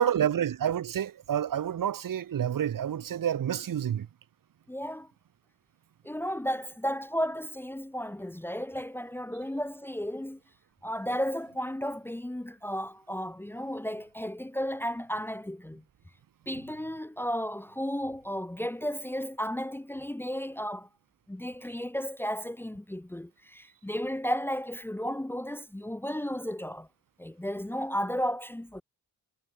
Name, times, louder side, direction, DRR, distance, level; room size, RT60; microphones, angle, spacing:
voice 1, 0.0-4.1, right 9 dB, 60° right, 3.1 m, -28 dB
voice 2, 4.7-5.1 6.0-10.4 10.8-15.8 16.5-20.9 21.3-26.9 27.2-28.8, equal, 5° left, 1.4 m, -34 dB
cardioid pair, 120°, 38 cm